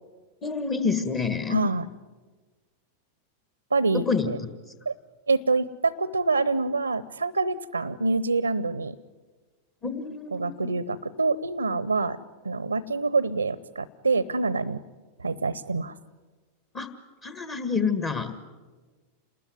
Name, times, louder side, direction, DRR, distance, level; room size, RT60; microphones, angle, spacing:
voice 1, 0.4-1.6 3.9-4.3 9.8-10.7 16.7-16.9 17.2-18.4, left 5 dB, 30° left, 8 dB, 1.8 m, -28 dB
voice 2, 1.5-1.8 3.7-4.4 4.9-5.0 5.3-9.0 10.3-12.2 12.4-14.8 15.2-16.0, right 3 dB, 80° right, 19 dB, 0.8 m, -26 dB
28.5 x 20.5 x 9.7 m, 1.4 s
figure-of-eight pair, 90°, 0 cm